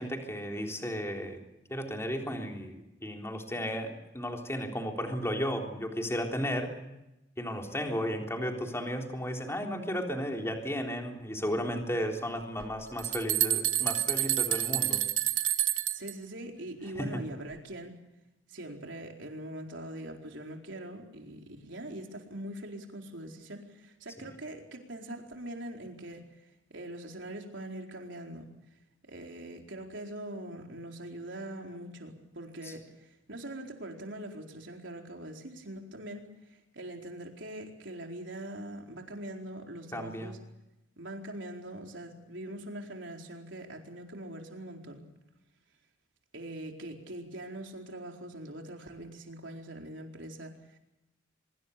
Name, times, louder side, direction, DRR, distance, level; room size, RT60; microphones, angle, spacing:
voice 1, 0.0-1.4 1.7-6.8 7.4-15.0 17.0-17.2 32.7-32.8 39.9-40.3, equal, 15° left, 2 dB, 3.7 m, -34 dB
sound 1, 12.6-16.1, right 13 dB, 90° right, 1.6 m, -28 dB
voice 2, 15.9-17.9 18.5-28.5 29.1-40.4 41.0-45.1 46.3-50.8, right 1 dB, 70° right, 2 dB, 4.4 m, -42 dB
24.5 x 23.0 x 6.8 m, 0.92 s
head